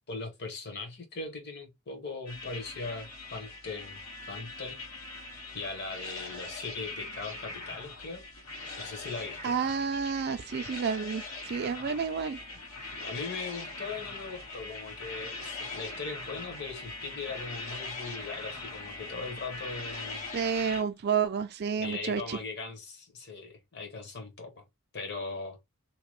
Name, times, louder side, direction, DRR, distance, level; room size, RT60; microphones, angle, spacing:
voice 1, 0.1-4.8 5.5-8.2 8.8-9.5 12.5-12.6 13.0-20.3 21.8-24.6 24.9-25.6, left 4 dB, 50° left, 1.1 m, -39 dB
sound 1, 2.3-20.8, left 3 dB, 90° left, 1.5 m, -41 dB
voice 2, 9.4-12.4 20.3-22.4, right 6 dB, 50° right, 0.4 m, -30 dB
2.9 x 2.2 x 3.0 m
head